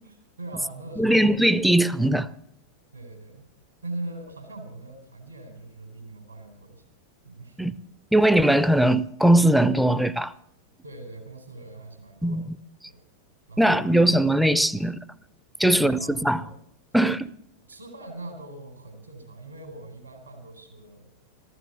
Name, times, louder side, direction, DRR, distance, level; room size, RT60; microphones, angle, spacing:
voice 1, 0.0-1.2 2.9-3.5 3.8-6.8 7.2-7.6 10.8-12.4 12.9-13.0 13.5-14.2 15.6-16.6 17.7-21.1, right 2 dB, 80° right, 4.3 m, -41 dB
voice 2, 1.0-2.3 7.6-7.7 8.1-10.3 12.2-12.4 13.6-15.0 15.6-16.4 16.9-17.3, right 1 dB, ahead, 0.6 m, -20 dB
14.5 x 13.0 x 6.9 m
figure-of-eight pair, 90°, 0 cm